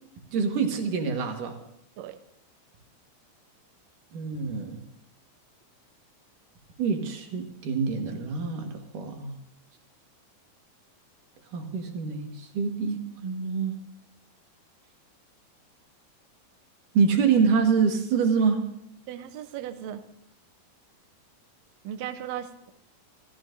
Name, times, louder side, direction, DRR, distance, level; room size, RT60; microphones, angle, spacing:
voice 1, 0.3-1.6 4.1-4.8 6.8-9.3 11.5-13.7 16.9-18.6, right 5 dB, 65° right, 3 dB, 3.1 m, -26 dB
voice 2, 19.1-20.0 21.8-22.7, right 10 dB, 85° right, 8 dB, 1.5 m, -36 dB
28.0 x 14.0 x 2.7 m, 0.76 s
omnidirectional pair, 4.2 m